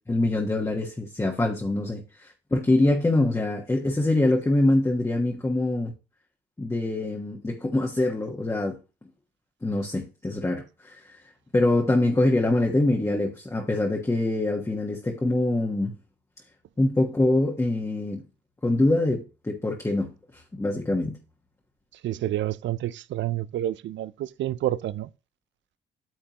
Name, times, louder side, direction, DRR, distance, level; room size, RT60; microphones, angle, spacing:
voice 1, 0.1-5.9 6.6-8.8 9.6-11.2 11.5-15.9 16.8-18.2 18.6-21.2, left 2 dB, 15° left, 1.3 m, -24 dB
voice 2, 22.0-25.1, right 13 dB, 70° right, 0.5 m, -29 dB
9.2 x 6.7 x 3.0 m
cardioid pair, 90°, 20 cm